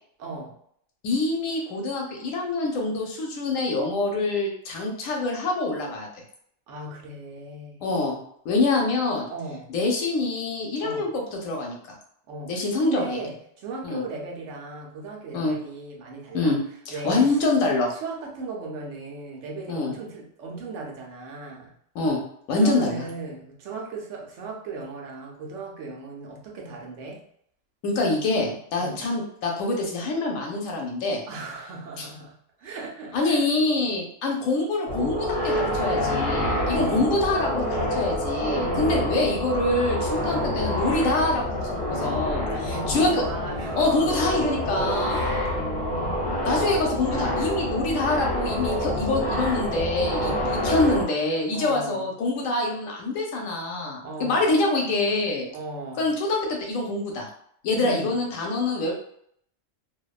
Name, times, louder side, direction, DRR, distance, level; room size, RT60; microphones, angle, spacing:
voice 1, 0.2-0.5 6.7-7.8 9.3-9.7 10.8-11.1 12.3-16.6 16.9-17.4 17.9-21.7 22.5-27.2 28.8-29.0 31.3-33.5 36.7-37.2 38.5-39.1 42.5-44.4 45.1-46.4 47.1-47.4 50.1-50.6 51.5-52.1 54.0-54.5 55.5-56.1 57.7-58.1, right 3 dB, 70° right, 0 dB, 0.9 m, -37 dB
voice 2, 1.0-6.1 7.8-8.2 8.4-9.3 9.7-11.9 12.5-13.2 13.8-14.0 15.3-15.6 16.3-16.6 16.9-17.9 19.7-19.9 21.9-22.2 22.5-23.0 27.8-31.2 32.0-32.1 33.1-43.2 43.7-45.4 46.5-50.3 50.6-55.5 56.0-57.3 57.6-58.9, left 2 dB, 90° left, 1 dB, 1.0 m, -25 dB
sound 1, 34.9-51.0, left 1 dB, 55° left, 0.8 m, -27 dB
2.5 x 2.1 x 2.3 m, 0.67 s
omnidirectional pair, 1.3 m